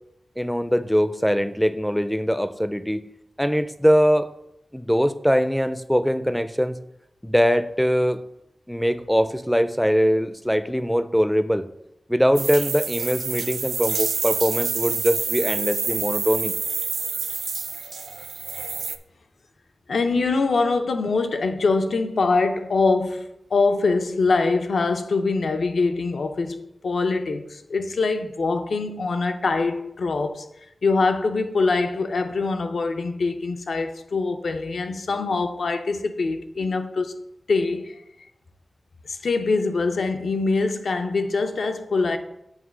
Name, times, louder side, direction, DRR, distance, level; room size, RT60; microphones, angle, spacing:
voice 1, 0.4-3.0 3.4-4.3 4.7-6.8 7.2-8.2 8.7-11.7 12.1-16.5 20.1-20.5, equal, ahead, 0.4 m, -22 dB
sound 1, 12.3-19.0, right 5 dB, 85° right, 0.4 m, -28 dB
voice 2, 19.9-30.4 30.8-37.1 37.5-38.0 39.1-42.2, left 3 dB, 80° left, 0.6 m, -23 dB
7.3 x 3.1 x 6.1 m
wide cardioid pair, 95°, 0 cm